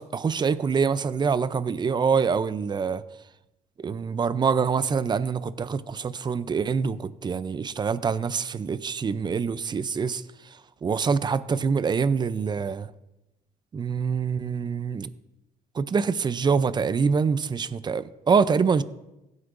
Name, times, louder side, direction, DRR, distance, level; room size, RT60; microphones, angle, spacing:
voice 1, 0.0-3.0 3.8-10.2 10.8-12.9 13.7-15.1 15.8-18.8, right 5 dB, 25° right, 0.5 m, -25 dB
16.5 x 8.2 x 2.6 m
cardioid pair, 110°, 17 cm